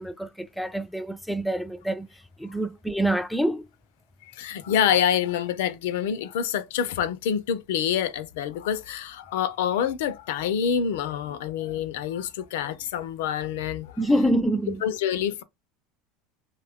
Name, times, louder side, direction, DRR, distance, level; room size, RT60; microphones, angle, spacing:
voice 1, 0.0-2.1 2.4-3.7 14.0-14.8, right 1 dB, ahead, 0.3 m, -26 dB
voice 2, 4.3-14.0 14.8-15.4, left 9 dB, 80° left, 0.4 m, -27 dB
2.7 x 2.3 x 3.4 m
supercardioid pair, 110°, 0 cm